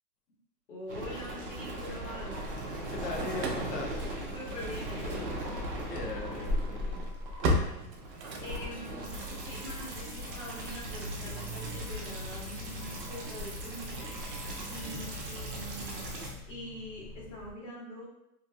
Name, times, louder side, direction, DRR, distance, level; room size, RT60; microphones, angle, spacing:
voice 1, 0.7-2.4 4.3-5.3 7.4-14.4 14.7-18.0, left 1 dB, 50° left, -5 dB, 1.3 m, -44 dB
sound 1, 0.9-16.3, right 1 dB, 35° right, 0.5 m, -39 dB
Engine starting / Slam, 1.2-2.6 2.8-15.9, equal, 85° right, 0.7 m, -39 dB
Dog, 1.8-17.5, left 1 dB, 30° left, 0.5 m, -44 dB
voice 2, 2.9-4.0 5.9-7.1 14.9-15.0, left 4 dB, 75° left, 0 dB, 0.9 m, -39 dB
3.1 x 2.6 x 2.2 m, 0.84 s
hypercardioid pair, 165°, 48 cm